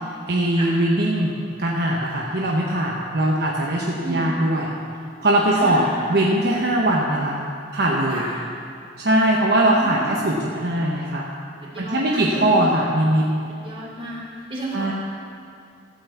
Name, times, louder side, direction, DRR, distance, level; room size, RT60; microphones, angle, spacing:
voice 1, 0.3-1.3 1.6-4.7 5.2-5.8 6.1-7.4 7.7-8.3 9.0-11.3 11.8-13.3 14.7-14.9, right 1 dB, 60° right, -3 dB, 1.0 m, -21 dB
voice 2, 4.0-4.3 5.5-6.1 8.1-8.4 9.3-10.3 11.6-12.6 13.5-14.9, right 1 dB, 30° right, -5 dB, 3.0 m, -32 dB
14.0 x 5.7 x 7.2 m, 2.4 s
head